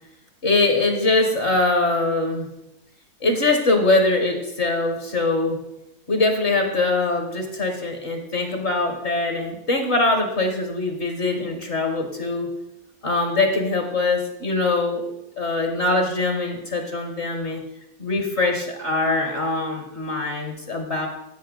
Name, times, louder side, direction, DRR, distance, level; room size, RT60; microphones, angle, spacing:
voice 1, 0.4-2.5 3.2-5.6 6.1-12.5 13.0-15.0 15.4-17.6 18.0-21.1, left 2 dB, 50° left, 4 dB, 1.3 m, -22 dB
15.0 x 5.5 x 3.8 m, 0.88 s
omnidirectional pair, 1.7 m